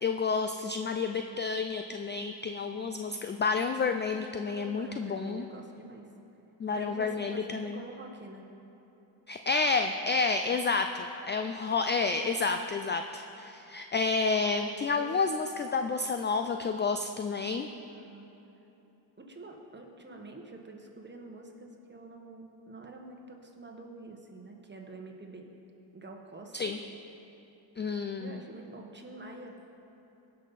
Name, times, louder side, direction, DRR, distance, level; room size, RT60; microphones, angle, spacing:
voice 1, 0.0-5.5 6.6-7.8 9.3-17.7 26.5-26.8 27.8-28.4, left 4 dB, 25° left, 7 dB, 0.3 m, -30 dB
voice 2, 4.5-6.1 6.7-8.5 15.0-15.1 17.9-18.3 19.2-25.5 25.9-26.8 28.2-29.6, right 2 dB, 20° right, 2 dB, 1.4 m, -46 dB
17.0 x 5.8 x 4.1 m, 3.0 s
cardioid pair, 70°, 47 cm